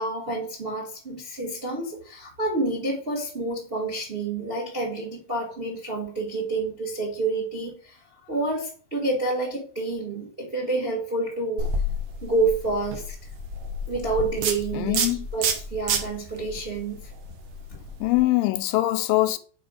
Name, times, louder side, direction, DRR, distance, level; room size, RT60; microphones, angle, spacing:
voice 1, 0.0-8.0 8.3-11.7 12.2-13.1 13.9-17.1, right 2 dB, 35° right, 0.9 m, -28 dB
sound 1, 11.6-18.2, right 2 dB, 65° right, 2.0 m, -30 dB
voice 2, 14.7-15.3 18.0-19.4, left 17 dB, 80° left, 2.2 m, -23 dB
6.8 x 4.8 x 4.9 m
omnidirectional pair, 4.1 m